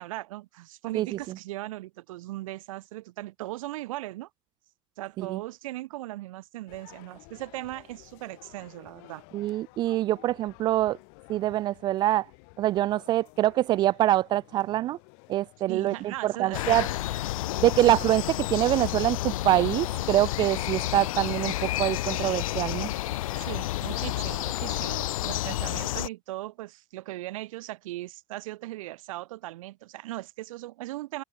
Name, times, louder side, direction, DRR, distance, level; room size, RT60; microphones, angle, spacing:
voice 1, 0.0-4.3 5.0-9.2 15.7-16.9 23.3-31.2, right 17 dB, 80° right, 1.7 m, -38 dB
sound 1, 6.7-24.5, left 40 dB or more, 55° left, 5.2 m, -53 dB
voice 2, 9.3-11.0 11.3-12.3 12.6-15.0 15.3-16.9 17.6-22.9, right 14 dB, 25° right, 0.3 m, -25 dB
sound 2, 16.5-26.1, left 16 dB, 85° left, 1.9 m, -30 dB
supercardioid pair, 155°, 17 cm